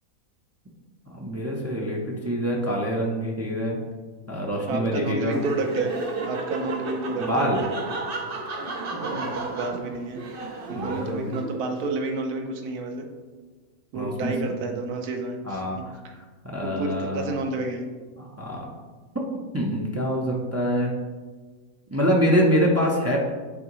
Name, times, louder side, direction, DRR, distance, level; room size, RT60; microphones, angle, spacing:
voice 1, 1.1-3.8 4.3-5.4 7.2-7.6 10.8-11.4 13.9-14.8 15.5-15.8 16.4-17.3 18.2-18.7 19.5-20.9 21.9-23.2, equal, 20° right, -2 dB, 0.3 m, -25 dB
voice 2, 4.6-5.9 6.3-7.5 8.9-10.2 10.7-13.1 13.9-15.6 16.6-17.9, right 3 dB, 85° right, 3 dB, 1.3 m, -30 dB
Laughter, 5.2-11.8, right 3 dB, 50° right, 0.8 m, -32 dB
8.4 x 3.7 x 3.1 m, 1.4 s
omnidirectional pair, 1.6 m